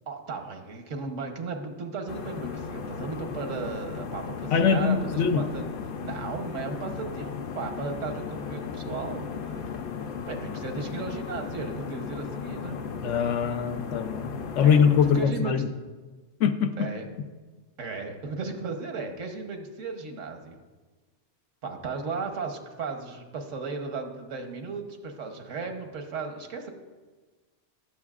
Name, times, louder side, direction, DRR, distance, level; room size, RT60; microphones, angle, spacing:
voice 1, 0.1-5.6 6.0-9.8 10.3-12.8 14.6-14.9 15.1-15.6 16.8-17.1 17.8-20.6 21.6-26.7, right 4 dB, 85° right, 4 dB, 1.4 m, -35 dB
sound 1, 2.1-15.2, left 6 dB, 55° left, 0.7 m, -36 dB
voice 2, 4.5-5.4 13.0-14.3 14.5-15.7 16.4-16.9, left 7 dB, 80° left, 9 dB, 1.0 m, -22 dB
18.0 x 7.1 x 2.4 m, 1.3 s
omnidirectional pair, 1.3 m